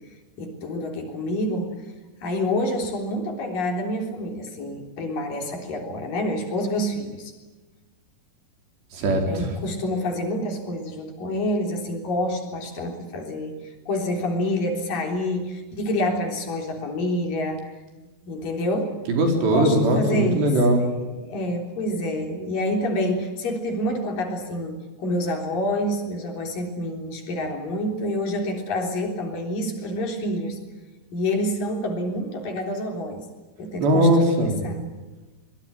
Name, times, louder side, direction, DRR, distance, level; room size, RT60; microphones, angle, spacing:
voice 1, 0.4-1.7 2.2-7.3 9.3-13.6 13.9-17.7 18.2-19.0 19.5-20.5 21.2-30.6 31.1-33.2 33.6-34.8, left 1 dB, 55° left, 3 dB, 5.2 m, -27 dB
voice 2, 8.9-9.5 19.1-20.9 33.8-34.6, right 1 dB, 90° right, 3 dB, 6.5 m, -20 dB
24.5 x 22.5 x 9.0 m, 1.2 s
omnidirectional pair, 4.8 m